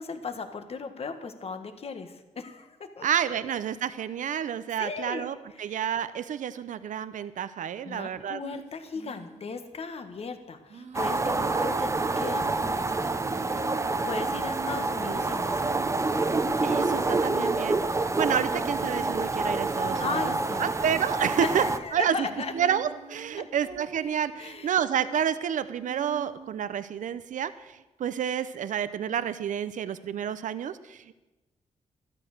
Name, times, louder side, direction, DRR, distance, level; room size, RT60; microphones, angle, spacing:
voice 1, 0.0-3.1 4.8-5.7 7.8-15.7 17.3-17.6 19.9-21.0 21.4-22.5 23.4-23.5 24.4-24.7, left 4 dB, 50° left, 8 dB, 1.6 m, -37 dB
voice 2, 3.0-8.4 11.5-11.8 15.1-15.3 16.6-17.8 18.2-20.3 20.6-21.6 21.9-22.3 22.5-31.1, right 8 dB, 80° right, 13 dB, 0.7 m, -29 dB
sound 1, 8.4-9.7 10.7-26.6, right 4 dB, 65° right, 2.0 m, -46 dB
sound 2, 10.9-21.8, right 3 dB, 20° right, 0.7 m, -27 dB
13.5 x 13.0 x 6.7 m, 1.1 s
wide cardioid pair, 120°, 13 cm